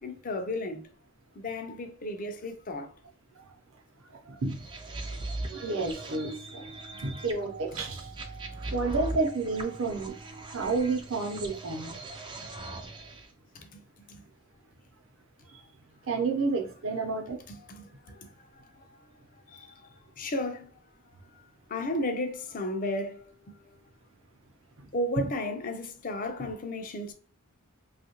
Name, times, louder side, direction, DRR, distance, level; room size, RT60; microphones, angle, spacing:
voice 1, 0.0-0.8 1.4-2.9 6.9-7.1 8.6-8.7 12.4-12.5 13.5-13.8 14.1-14.2 17.5-19.0 19.5-20.9 21.3-21.4 21.7-23.7 24.9-27.1, left 1 dB, 40° left, 0.5 m, -35 dB
voice 2, 4.1-4.7 5.5-6.7 7.0-8.1 8.7-10.2 10.5-12.0 15.5-15.6 16.1-17.4 24.8-24.9 25.2-25.3, right 3 dB, 65° right, 0.7 m, -30 dB
sound 1, 4.5-13.3, right 2 dB, 20° right, 0.3 m, -40 dB
3.1 x 2.4 x 2.9 m
head